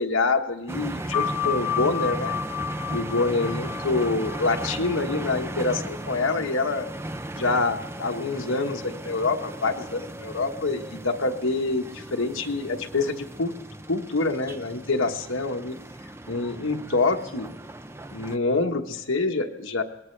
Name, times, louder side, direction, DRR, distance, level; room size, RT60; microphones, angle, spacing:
voice 1, 0.0-2.4 2.9-6.9 7.3-13.5 13.9-15.8 16.3-17.5 18.1-19.8, left 3 dB, 80° left, 4 dB, 1.3 m, -26 dB
sound 1, 0.7-18.4, right 1 dB, 10° right, 0.4 m, -36 dB
sound 2, 1.1-6.3, left 8 dB, 10° left, 2.1 m, -32 dB
22.0 x 18.5 x 3.3 m, 0.98 s
head